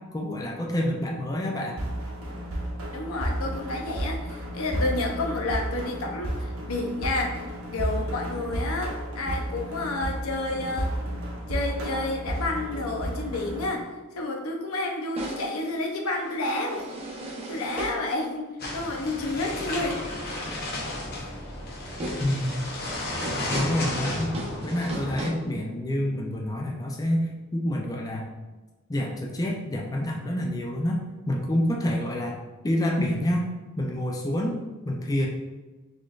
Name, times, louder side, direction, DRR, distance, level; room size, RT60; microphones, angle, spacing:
voice 1, 0.1-1.8 22.2-22.8 23.5-24.3 24.6-28.3 28.9-31.0 31.3-32.4 32.6-33.5 33.8-34.6 34.9-35.3, left 1 dB, 15° left, 0 dB, 0.3 m, -27 dB
sound 1, 1.8-13.8, right 1 dB, 85° right, 0.8 m, -32 dB
voice 2, 2.9-10.9 11.5-13.8 14.1-16.9 17.5-20.0, left 2 dB, 85° left, 1 dB, 0.7 m, -30 dB
sound 2, 12.3-13.0 15.2-18.1 21.6-21.7 22.0-22.4 23.0-25.3, right 1 dB, 30° right, 0.6 m, -37 dB
sound 3, 18.6-25.2, left 1 dB, 45° left, 0.7 m, -33 dB
4.1 x 3.1 x 2.4 m, 1.2 s
head